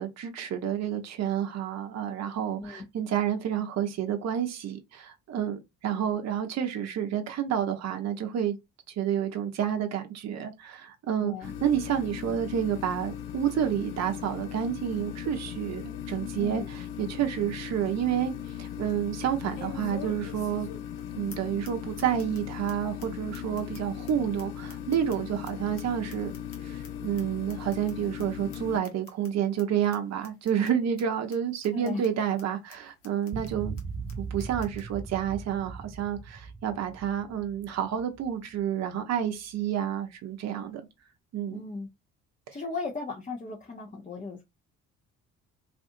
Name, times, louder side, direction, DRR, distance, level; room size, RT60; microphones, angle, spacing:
voice 1, 0.0-8.6 8.9-18.3 18.6-20.7 21.2-26.3 26.6-33.7 34.2-40.8 41.3-41.6, right 9 dB, 45° right, 0.7 m, -29 dB
voice 2, 11.2-11.5 16.4-16.7 31.7-32.0 41.5-41.9 42.5-44.4, left 3 dB, 20° left, 0.7 m, -36 dB
sound 1, 11.4-28.8, left 9 dB, 55° left, 0.6 m, -38 dB
sound 2, 19.5-21.0 21.3-21.4 21.6-21.7 22.0-22.4 22.7-22.8 23.0-23.1 23.3-25.5 25.8-26.9 27.2-27.3 27.5-27.9 28.2-28.3 28.5-28.6 28.8-29.3 29.6-29.7 29.9-30.0 30.2-30.7 31.0-31.1 31.3-31.4 31.6-32.1 32.4-32.5 32.7-32.8 33.0-33.5 33.8-33.9 34.1-34.2 34.4-34.8, left 5 dB, 80° left, 0.9 m, -46 dB
sound 3, 33.3-38.7, right 5 dB, 20° right, 0.3 m, -39 dB
2.5 x 2.5 x 2.6 m
figure-of-eight pair, 45°, 38 cm